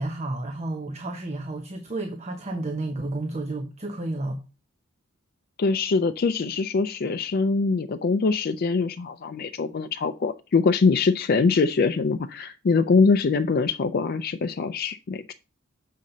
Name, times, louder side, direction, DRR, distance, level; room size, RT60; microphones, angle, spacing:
voice 1, 0.0-4.4, right 2 dB, 30° right, 0.9 m, -31 dB
voice 2, 5.6-15.3, left 4 dB, 45° left, 0.4 m, -23 dB
7.4 x 5.7 x 3.9 m
head